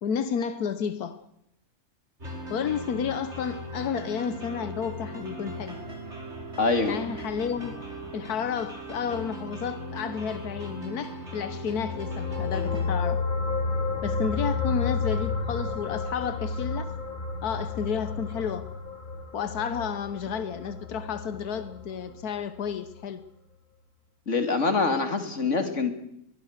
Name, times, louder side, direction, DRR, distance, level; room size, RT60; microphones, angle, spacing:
voice 1, 0.0-1.2 2.5-5.8 6.9-7.8 8.1-13.2 14.0-16.9 17.4-18.7 19.3-23.2, left 7 dB, 85° left, 1.5 m, -31 dB
sound 1, 2.2-12.9, right 1 dB, 45° right, 5.2 m, -39 dB
voice 2, 6.6-7.0 24.3-25.9, left 4 dB, 50° left, 2.8 m, -24 dB
sound 2, 11.6-22.3 22.6-22.8, left 4 dB, 30° left, 1.7 m, -31 dB
23.5 x 21.0 x 6.6 m
omnidirectional pair, 1.6 m